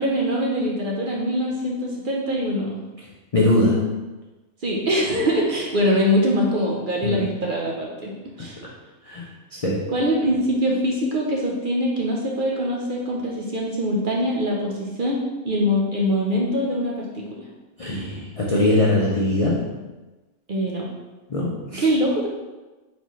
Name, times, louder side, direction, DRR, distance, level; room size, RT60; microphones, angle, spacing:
voice 1, 0.0-2.8 4.6-8.6 9.9-15.2 15.4-17.2 20.5-20.9 21.7-22.3, equal, 50° right, -2 dB, 0.7 m, -23 dB
voice 2, 3.3-3.9 7.0-7.3 8.4-8.7 9.0-9.9 17.8-19.8 21.3-21.9, left 1 dB, 60° left, -3 dB, 0.3 m, -22 dB
4.3 x 4.0 x 3.1 m, 1.2 s
omnidirectional pair, 1.4 m